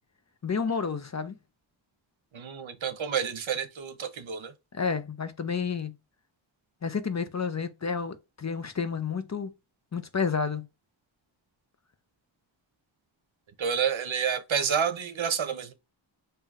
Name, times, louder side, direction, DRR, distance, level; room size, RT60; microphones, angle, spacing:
voice 1, 0.4-1.4 4.7-5.9 6.8-9.5 9.9-10.6, left 5 dB, 35° left, 0.5 m, -30 dB
voice 2, 2.3-4.5 13.6-15.7, right 7 dB, 75° right, 0.8 m, -29 dB
5.5 x 2.7 x 2.4 m
wide cardioid pair, 80°, 47 cm